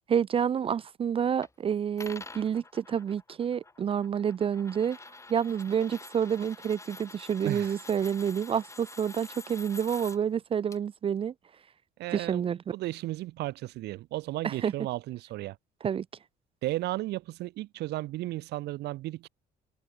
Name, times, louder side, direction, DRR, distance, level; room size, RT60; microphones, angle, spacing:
voice 1, 0.1-5.0 5.3-11.3 12.1-12.6 14.4-14.7 15.8-16.0, right 8 dB, 35° right, 0.4 m, -28 dB
sound 1, 1.4-1.5 2.0-10.2 10.7-10.8, left 3 dB, 15° left, 4.4 m, -47 dB
voice 2, 12.0-12.4 12.7-15.6 16.6-19.3, right 17 dB, 80° right, 1.8 m, -34 dB
cardioid pair, 110°, 17 cm